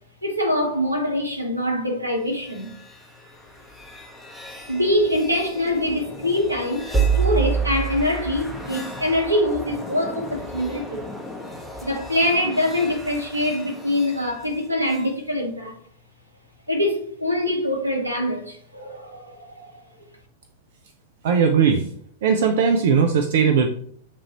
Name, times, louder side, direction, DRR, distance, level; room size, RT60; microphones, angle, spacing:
voice 1, 0.2-2.7 4.7-11.1 11.8-15.8 16.7-19.8, left 1 dB, 85° right, 0.9 m, -24 dB
sound 1, 2.3-15.1, right 4 dB, ahead, 0.8 m, -30 dB
voice 2, 21.2-21.9 22.2-23.7, right 6 dB, 55° right, 0.4 m, -18 dB
7.3 x 2.5 x 2.9 m
figure-of-eight pair, 95°, 0 cm